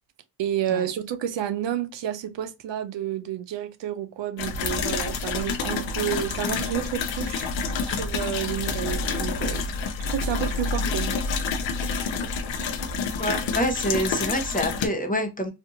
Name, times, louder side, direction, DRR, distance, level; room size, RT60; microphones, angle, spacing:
voice 1, 0.4-7.5 7.8-11.1, right 10 dB, 75° right, 0.5 m, -30 dB
sound 1, 4.4-14.9, left 4 dB, 85° left, 0.6 m, -28 dB
voice 2, 13.2-15.5, equal, 20° left, 0.8 m, -26 dB
2.7 x 2.5 x 2.5 m
cardioid pair, 65°, 44 cm